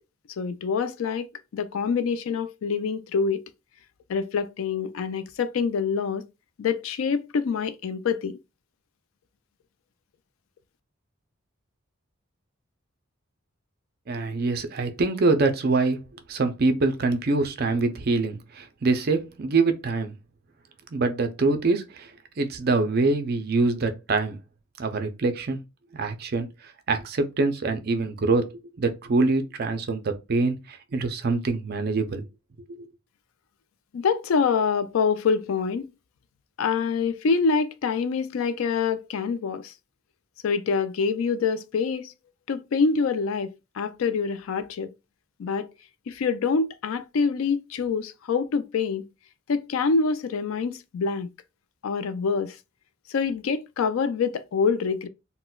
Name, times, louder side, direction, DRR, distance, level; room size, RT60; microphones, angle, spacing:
voice 1, 0.4-1.3 1.5-3.4 4.1-6.2 6.6-8.4 33.9-35.9 36.6-39.7 40.4-42.1 42.5-44.9 45.4-45.7 46.1-49.1 49.5-51.3 51.8-52.6 53.1-55.1, left 5 dB, 80° left, 0.4 m, -26 dB
voice 2, 14.1-16.0 16.3-20.1 20.9-22.1 22.4-24.4 24.8-25.6 25.9-32.2 32.8-32.9, right 3 dB, 45° right, 0.5 m, -25 dB
3.9 x 2.1 x 2.3 m
head